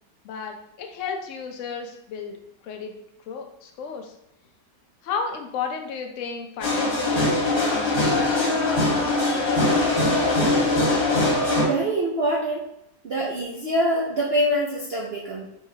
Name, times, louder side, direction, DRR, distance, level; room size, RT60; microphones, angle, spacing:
voice 1, 0.2-2.4 2.6-2.9 3.3-4.1 5.0-7.9 8.2-9.7, left 6 dB, 65° left, 3 dB, 0.8 m, -34 dB
sound 1, 6.6-11.6, left 2 dB, 35° left, 1.3 m, -21 dB
voice 2, 11.6-12.7 13.0-15.5, right 1 dB, 65° right, -5 dB, 0.6 m, -24 dB
4.7 x 3.6 x 2.7 m, 0.77 s
omnidirectional pair, 1.9 m